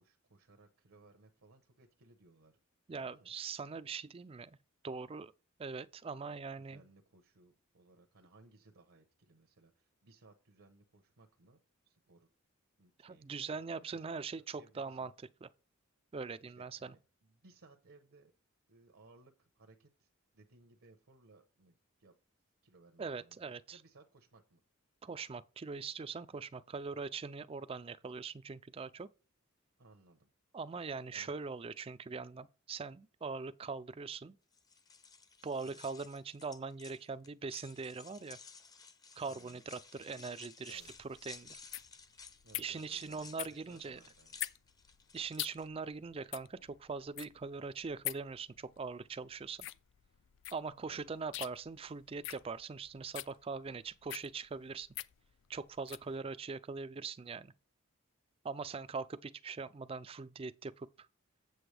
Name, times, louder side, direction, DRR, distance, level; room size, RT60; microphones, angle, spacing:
voice 1, 0.0-2.6 2.9-3.4 6.6-11.6 11.8-12.3 12.8-15.1 16.6-18.3 18.7-22.1 22.6-23.4 23.7-24.6 29.8-30.3 31.1-31.3 35.6-35.8 39.2-39.6 40.7-40.9 42.4-44.4 50.6-51.2, right 3 dB, 75° right, 0.9 m, -63 dB
voice 2, 2.9-4.5 4.8-5.3 5.6-6.8 13.0-15.1 15.4-15.5 16.1-16.9 23.0-23.8 25.0-29.1 30.5-34.3 35.4-38.4 39.2-41.6 42.6-44.0 45.1-49.7 50.5-54.9 55.5-57.5 58.4-61.1, right 4 dB, 25° right, 0.3 m, -42 dB
sound 1, 34.5-45.6, left 5 dB, 20° left, 0.6 m, -56 dB
sound 2, 40.7-56.1, left 15 dB, 60° left, 0.4 m, -45 dB
7.9 x 7.7 x 3.3 m
head